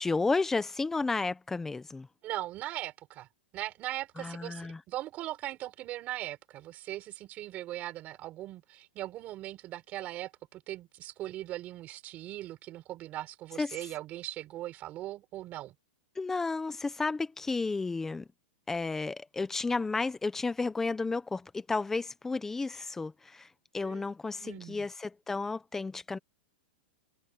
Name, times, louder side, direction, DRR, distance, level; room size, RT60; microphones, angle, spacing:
voice 1, 0.0-2.1 4.2-4.8 13.6-13.7 16.2-18.3 18.7-23.5 23.7-26.2, left 3 dB, 5° left, 0.9 m, -32 dB
voice 2, 2.2-3.3 3.5-15.7 23.8-24.0 24.4-24.9, right 15 dB, 25° right, 5.5 m, -40 dB
supercardioid pair, 165°, 6 cm